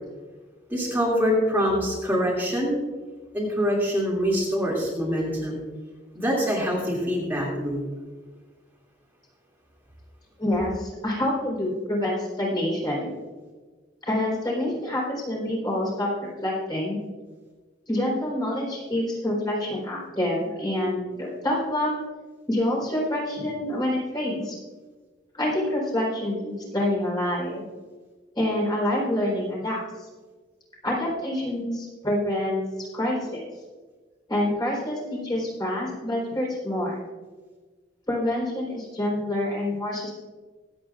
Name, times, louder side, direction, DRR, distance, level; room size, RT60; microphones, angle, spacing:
voice 1, 0.7-2.7 3.3-5.6 6.1-7.8, equal, 10° right, -6 dB, 2.7 m, -24 dB
voice 2, 10.4-13.1 14.1-17.0 17.9-22.0 22.5-24.5 25.3-27.6 28.4-30.1 30.8-32.6 32.9-33.4 34.3-37.0 38.1-40.1, left 1 dB, 25° left, -4 dB, 4.3 m, -27 dB
24.5 x 8.6 x 2.5 m, 1.4 s
head